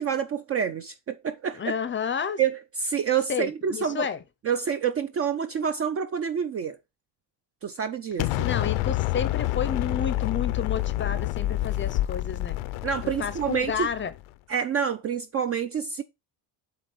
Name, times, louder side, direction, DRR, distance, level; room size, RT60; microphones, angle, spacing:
voice 1, 0.0-1.8 2.4-4.1 4.4-6.8 7.6-8.3 12.8-13.9 14.5-16.0, right 7 dB, 35° right, 0.4 m, -27 dB
voice 2, 1.6-2.4 3.3-4.2 8.4-12.6 13.2-14.1, left 7 dB, 25° left, 0.6 m, -30 dB
Explosion, 8.2-14.2, left 16 dB, 80° left, 0.7 m, -28 dB
7.8 x 3.9 x 5.3 m
cardioid pair, 160°, 48 cm